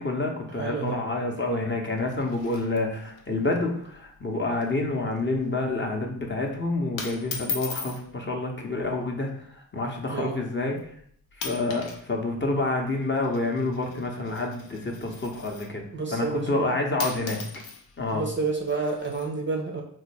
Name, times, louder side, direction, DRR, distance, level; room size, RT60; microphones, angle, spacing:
voice 1, 0.0-10.9 11.4-15.8 16.1-17.4 18.0-18.3, left 2 dB, 25° left, 1 dB, 0.7 m, -28 dB
voice 2, 0.6-1.0 10.1-10.4 15.9-16.8 18.1-19.8, right 4 dB, 25° right, 1 dB, 0.6 m, -29 dB
sound 1, 2.0-3.2 3.5-3.6 3.9-4.2 4.5-4.8 5.2-5.5 6.2-6.5 7.0-8.0 9.0-9.3 10.0-10.1 10.8-11.0 11.3-12.0 12.3-15.8 16.6-16.7 17.0-19.3, left 5 dB, 85° left, 0.6 m, -38 dB
3.7 x 2.2 x 3.3 m, 0.64 s
hypercardioid pair, 40°, 49 cm